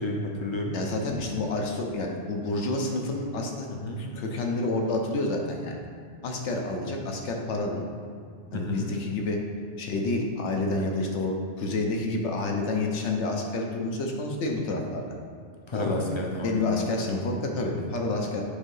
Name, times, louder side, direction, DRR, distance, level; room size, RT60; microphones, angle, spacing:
voice 1, 0.0-0.8 3.7-4.0 8.5-8.9 10.8-10.9 15.7-16.6, left 2 dB, 35° left, 0 dB, 0.5 m, -30 dB
voice 2, 0.7-3.7 4.0-5.8 6.2-7.8 8.5-9.4 9.8-15.1 15.7-16.0 16.4-18.4, left 2 dB, 80° left, 1 dB, 1.0 m, -29 dB
6.6 x 2.7 x 5.4 m, 2.2 s
omnidirectional pair, 1.2 m